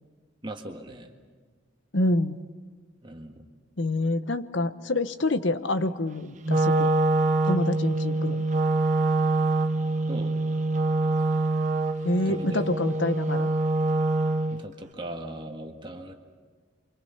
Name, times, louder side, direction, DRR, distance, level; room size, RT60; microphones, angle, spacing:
voice 1, 0.4-1.1 3.0-3.4 10.1-10.3 12.3-12.7 14.5-16.1, right 1 dB, 25° right, 3 dB, 1.9 m, -38 dB
voice 2, 1.9-2.4 3.8-6.9 7.5-8.4 12.0-13.5, left 2 dB, 75° left, 10 dB, 1.1 m, -27 dB
Wind instrument woodwind instrument, 6.4-14.6, right 2 dB, 40° right, 1.0 m, -25 dB
29.0 x 25.5 x 5.9 m, 1.5 s
head